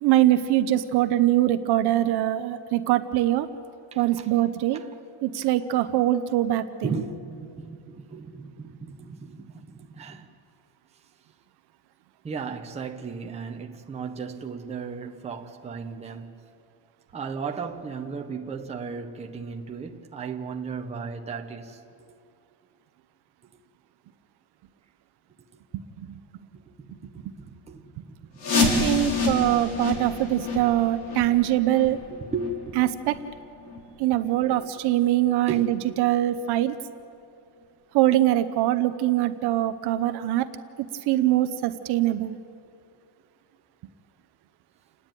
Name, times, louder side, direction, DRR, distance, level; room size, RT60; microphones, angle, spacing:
voice 1, 0.0-3.5 4.0-4.8 5.2-7.0 28.5-32.0 32.8-33.1 34.0-36.7 37.9-40.5 41.1-42.4, right 14 dB, 55° right, 0.8 m, -23 dB
voice 2, 3.9-4.3 4.7-4.9 6.8-10.3 12.2-16.4 17.1-21.8 27.0-27.1 27.6-29.0 32.1-32.8 34.3-34.6 35.5-35.7 36.6-36.7, right 5 dB, 15° right, 0.9 m, -36 dB
sound 1, 28.4-34.0 34.3-34.4 35.0-35.1 35.7-35.8 36.3-36.4, left 3 dB, 80° left, 3.5 m, -28 dB
29.5 x 10.0 x 9.0 m
cardioid pair, 175°, 47 cm